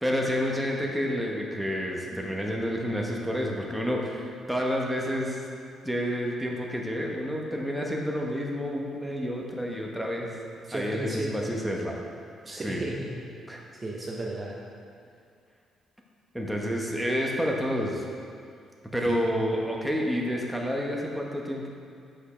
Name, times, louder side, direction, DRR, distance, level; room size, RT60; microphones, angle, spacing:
voice 1, 0.0-5.4 5.8-10.4 10.7-12.0 12.6-12.9 13.5-13.6 16.3-18.0 18.9-21.7, equal, 5° right, -1 dB, 1.1 m, -29 dB
voice 2, 10.6-11.4 12.4-13.2 13.7-14.6 19.0-19.4, right 2 dB, 30° right, -2 dB, 0.8 m, -34 dB
6.5 x 5.5 x 4.9 m, 2.3 s
cardioid pair, 90°, 0 cm